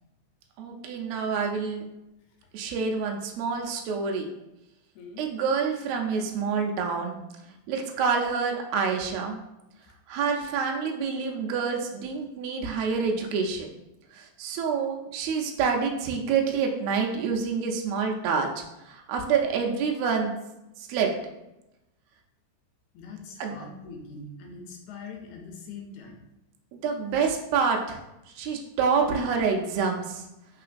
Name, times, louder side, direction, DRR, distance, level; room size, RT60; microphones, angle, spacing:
voice 1, 0.6-1.9 2.5-4.3 5.2-7.2 7.7-9.4 10.1-13.7 14.1-20.3 20.8-21.1 23.4-23.5 26.7-28.0 28.4-30.3, right 5 dB, 75° right, 1 dB, 1.8 m, -27 dB
voice 2, 5.0-5.3 22.9-26.2, left 4 dB, 90° left, 2 dB, 2.1 m, -42 dB
4.1 x 3.8 x 2.5 m, 0.92 s
omnidirectional pair, 3.4 m